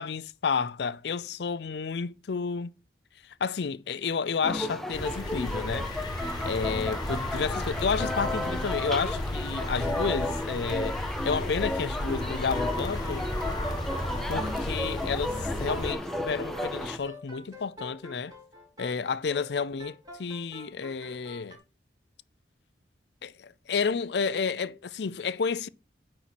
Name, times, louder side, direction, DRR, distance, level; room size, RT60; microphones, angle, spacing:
voice 1, 0.0-2.7 3.4-5.9 6.4-11.0 11.2-13.3 14.3-18.3 18.8-21.6 23.2-25.7, left 5 dB, 70° left, 0.5 m, -31 dB
sound 1, 4.4-17.0, left 1 dB, ahead, 0.7 m, -33 dB
sound 2, 4.9-15.9, left 1 dB, 25° left, 1.7 m, -34 dB
sound 3, 12.2-13.4 13.7-21.6, left 1 dB, 20° right, 3.8 m, -47 dB
9.5 x 4.3 x 5.8 m
head